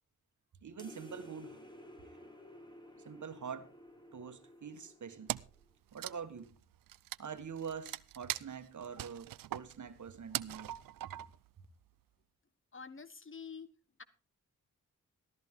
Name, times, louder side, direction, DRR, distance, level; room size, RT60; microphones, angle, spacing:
voice 1, 0.6-1.6 3.0-3.7 4.1-5.3 5.9-6.5 7.2-10.7 11.1-11.2, right 6 dB, 55° right, 1.6 m, -45 dB
sound 1, 0.8-5.7, equal, 15° left, 4.3 m, -54 dB
Wood, 5.3-5.6 5.9-11.5, right 13 dB, 75° right, 0.6 m, -41 dB
voice 2, 12.7-13.7 14.0-14.1, left 6 dB, 35° left, 1.4 m, -47 dB
13.5 x 13.5 x 3.7 m
supercardioid pair, 45°, 34 cm